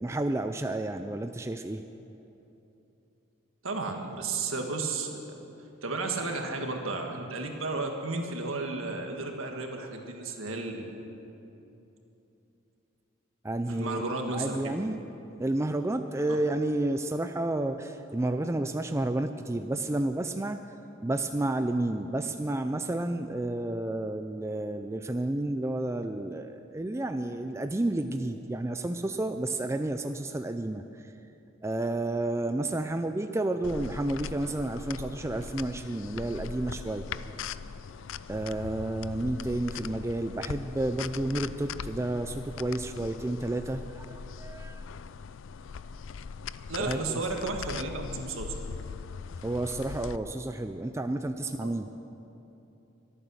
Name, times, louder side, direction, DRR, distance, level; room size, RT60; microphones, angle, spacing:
voice 1, 0.0-1.8 13.4-14.9 15.4-20.6 21.0-31.1 31.6-37.1 38.3-44.8 46.8-47.2 49.4-51.9, right 1 dB, 15° right, 7 dB, 0.3 m, -31 dB
voice 2, 3.6-5.4 5.8-10.9 13.7-14.7 46.7-48.5 51.6-51.7, right 3 dB, 70° right, 3 dB, 1.7 m, -33 dB
sound 1, 33.6-50.2, left 6 dB, 65° left, 0.4 m, -40 dB
24.0 x 9.0 x 6.4 m, 2.9 s
head